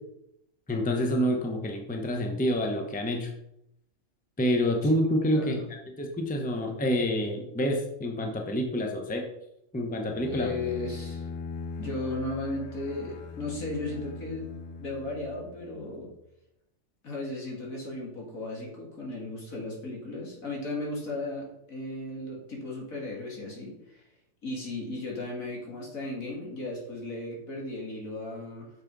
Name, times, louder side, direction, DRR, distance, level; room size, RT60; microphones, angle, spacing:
voice 1, 0.7-3.3 4.4-5.6 6.0-9.2 9.7-10.5, equal, 5° left, 2 dB, 1.0 m, -27 dB
voice 2, 5.3-5.6 10.3-11.2 11.8-14.5 14.8-16.1 17.0-24.0 24.4-28.7, left 2 dB, 65° left, -2 dB, 2.9 m, -35 dB
Bowed string instrument, 10.1-15.9, left 5 dB, 85° left, 1.3 m, -40 dB
6.7 x 6.5 x 5.4 m, 0.82 s
omnidirectional pair, 1.5 m